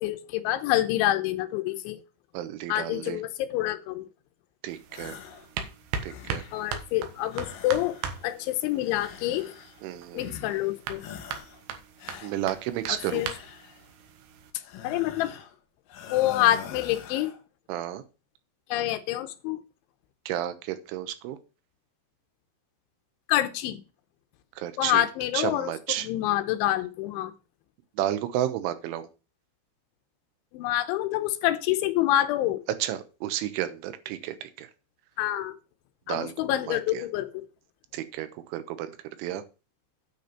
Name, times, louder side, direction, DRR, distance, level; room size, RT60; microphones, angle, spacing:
voice 1, 0.0-2.0 2.7-4.1 6.5-8.0 8.2-9.4 10.1-11.0 12.9-13.3 14.8-15.3 16.1-17.3 18.7-19.6 23.3-23.8 24.8-25.7 26.0-27.3 30.5-32.6 35.2-35.6 36.1-37.4, left 14 dB, 90° left, 8 dB, 3.2 m, -27 dB
voice 2, 2.3-3.2 4.6-5.2 6.0-6.4 9.8-10.3 12.2-13.2 17.7-18.0 20.3-21.4 24.6-25.1 25.3-26.1 28.0-29.1 32.8-34.7 36.1-36.3 36.7-37.0 37.9-39.4, right 12 dB, 90° right, 11 dB, 3.4 m, -32 dB
sound 1, 4.7-14.5, right 7 dB, 70° right, 3.2 m, -39 dB
sound 2, 4.9-5.5 5.8-6.7 7.3-8.3 8.8-9.8 10.2-10.7 11.0-11.6 12.0-13.8 14.6-15.6 15.9-17.4, left 8 dB, 65° left, 2.3 m, -44 dB
9.3 x 5.2 x 6.7 m, 0.32 s
omnidirectional pair, 5.4 m